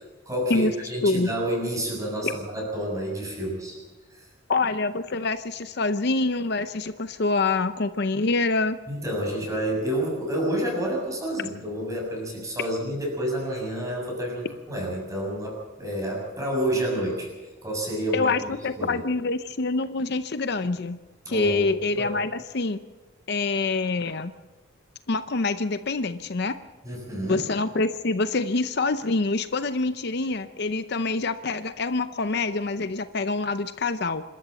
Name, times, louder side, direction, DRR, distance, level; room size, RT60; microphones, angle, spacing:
voice 1, 0.3-3.8 4.1-4.3 8.9-17.3 17.6-18.3 18.8-19.0 21.3-21.7 22.0-22.2 26.8-27.4, right 1 dB, 15° right, -1 dB, 7.0 m, -29 dB
voice 2, 4.5-8.8 18.1-21.0 21.3-22.8 23.3-24.3 25.1-26.6 27.2-34.2, left 3 dB, 55° left, 11 dB, 0.7 m, -26 dB
26.5 x 13.0 x 7.7 m, 1.3 s
head